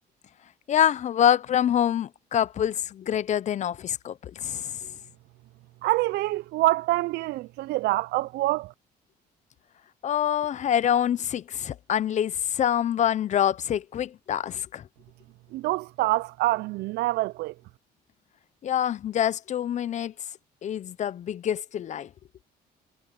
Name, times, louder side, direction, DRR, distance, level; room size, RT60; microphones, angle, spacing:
voice 1, 0.7-4.8 10.0-14.8 18.6-20.1 20.6-22.1, left 10 dB, 45° left, 0.7 m, -26 dB
voice 2, 5.8-8.7 15.5-17.5, right 18 dB, 75° right, 0.4 m, -26 dB
cardioid pair, 110°, 17 cm